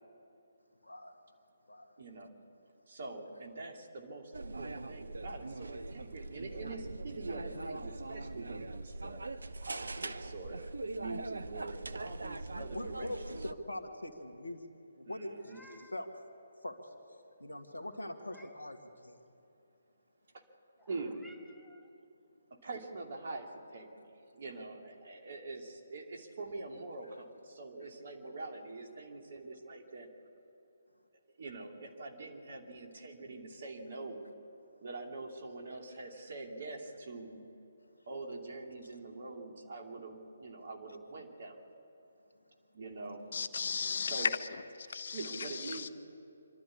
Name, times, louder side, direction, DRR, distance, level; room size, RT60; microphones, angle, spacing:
voice 1, 2.0-2.3 2.9-9.2 9.6-10.6 10.9-13.1 15.0-15.6 20.9-21.2 22.6-23.9 24.3-30.1 31.4-34.2 34.8-37.4 38.1-41.6 42.7-43.3 44.1-44.3 45.1-45.9, right 3 dB, 50° right, 2.8 m, -44 dB
sound 1, 4.3-13.5, right 2 dB, 70° right, 0.8 m, -42 dB
voice 2, 12.2-14.6 15.0-16.1 16.6-16.8 17.4-18.8 19.0-19.2, left 1 dB, 75° left, 2.0 m, -42 dB
Meow, 15.2-16.1 17.8-18.7 20.8-21.9, equal, ahead, 1.2 m, -60 dB
voice 3, 43.3-44.5 44.8-45.9, left 5 dB, 55° left, 0.8 m, -35 dB
26.0 x 12.5 x 8.5 m
figure-of-eight pair, 140°, 0 cm